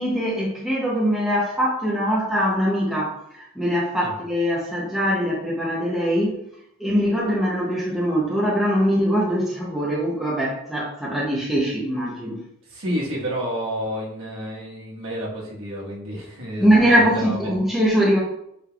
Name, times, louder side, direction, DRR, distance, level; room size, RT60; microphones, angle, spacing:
voice 1, 0.0-6.4 6.8-12.4 16.6-18.2, equal, ahead, -6 dB, 0.6 m, -22 dB
voice 2, 12.7-17.4, equal, 65° right, -5 dB, 1.3 m, -30 dB
4.8 x 3.3 x 2.3 m, 0.77 s
head